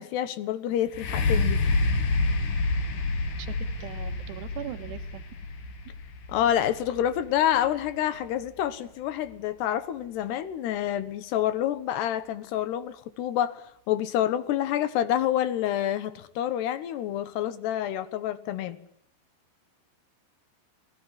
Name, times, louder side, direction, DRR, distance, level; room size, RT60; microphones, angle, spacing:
voice 1, 0.0-1.6 6.3-18.8, left 11 dB, 75° left, 15 dB, 3.3 m, -28 dB
sound 1, 0.9-8.7 9.3-9.4, left 3 dB, 55° left, 3.3 m, -28 dB
voice 2, 3.4-5.2, right 12 dB, 75° right, 10 dB, 3.4 m, -40 dB
26.0 x 18.0 x 9.7 m, 0.72 s
omnidirectional pair, 5.1 m